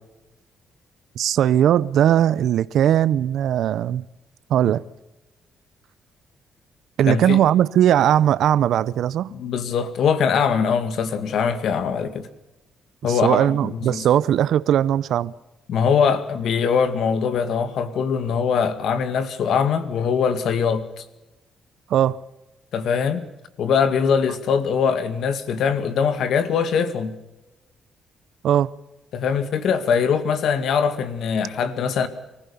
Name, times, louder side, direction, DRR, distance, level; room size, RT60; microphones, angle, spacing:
voice 1, 1.2-4.0 4.5-4.8 7.0-9.3 13.0-15.3 21.9-22.2 28.4-28.7, right 10 dB, 75° right, 0.6 m, -19 dB
voice 2, 7.1-7.4 9.3-12.3 13.0-14.0 15.7-20.8 22.7-23.2 23.6-27.2 29.1-32.1, left 6 dB, 70° left, 2.0 m, -22 dB
24.5 x 15.5 x 7.0 m
cardioid pair, 90°, 0 cm